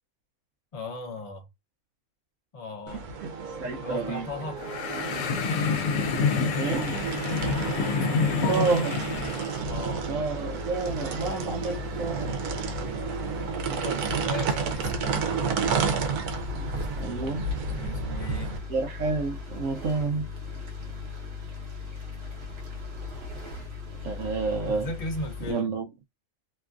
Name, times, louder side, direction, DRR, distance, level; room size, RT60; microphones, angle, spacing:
voice 1, 0.7-1.5 2.5-3.1 3.8-4.6 7.5-8.7 9.6-10.1 13.7-15.7 17.7-18.6 24.6-25.8, left 2 dB, 40° left, 0.5 m, -36 dB
sound 1, 2.9-18.6, right 5 dB, 90° right, 1.2 m, -31 dB
voice 2, 3.2-4.3 5.1-5.4 6.6-6.9 8.5-9.0 10.1-12.4 17.0-17.5 18.7-20.3 24.0-24.9 25.5-25.8, right 4 dB, 70° right, 0.9 m, -29 dB
sound 2, 4.6-9.6, left 5 dB, 70° left, 0.9 m, -28 dB
sound 3, 9.7-25.5, left 4 dB, 50° right, 1.1 m, -38 dB
2.9 x 2.3 x 2.4 m
omnidirectional pair, 1.5 m